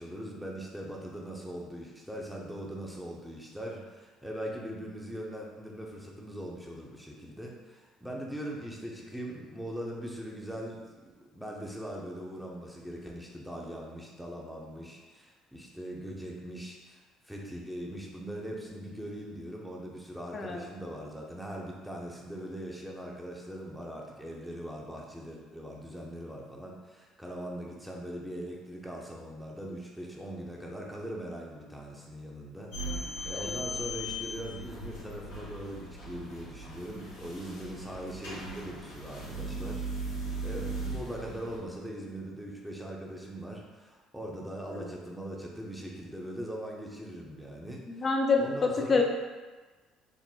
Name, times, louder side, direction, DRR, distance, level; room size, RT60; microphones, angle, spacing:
voice 1, 0.0-48.0 48.4-49.0, right 1 dB, ahead, -2 dB, 0.7 m, -41 dB
voice 2, 20.3-20.6 32.8-33.7 44.7-44.9 47.9-49.0, left 4 dB, 40° left, 2 dB, 0.6 m, -29 dB
sound 1, 32.7-41.6, right 1 dB, 85° left, 1.2 m, -38 dB
3.7 x 2.0 x 4.1 m, 1.3 s
hypercardioid pair, 65°, 0 cm